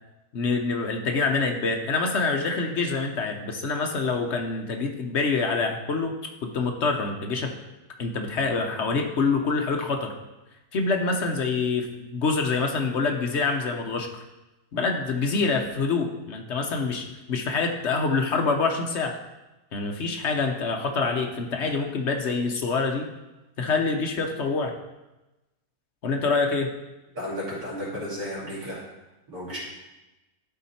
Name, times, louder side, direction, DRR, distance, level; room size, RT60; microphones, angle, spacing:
voice 1, 0.3-6.1 6.5-7.5 8.0-10.1 10.7-14.1 14.7-19.2 19.7-23.0 23.6-24.7 26.0-26.7, left 4 dB, 55° left, 3 dB, 1.0 m, -26 dB
voice 2, 27.1-28.8 29.3-29.6, equal, 80° right, -6 dB, 3.2 m, -33 dB
11.5 x 4.3 x 4.2 m, 1.0 s
omnidirectional pair, 1.6 m